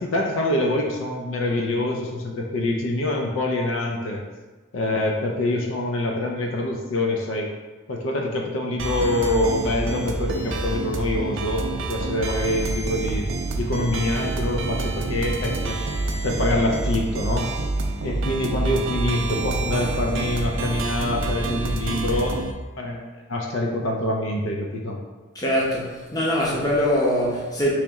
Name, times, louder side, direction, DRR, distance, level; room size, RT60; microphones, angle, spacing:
voice 1, 0.0-4.2 4.7-7.5 7.9-13.3 13.6-15.8 16.2-17.5 18.0-22.3 22.8-23.0 23.3-25.0, left 1 dB, 75° left, 0 dB, 0.5 m, -25 dB
sound 1, 8.8-22.5, right 2 dB, 75° right, 0.4 m, -27 dB
voice 2, 25.3-27.7, equal, 20° left, -5 dB, 0.7 m, -22 dB
3.2 x 2.9 x 3.5 m, 1.2 s
head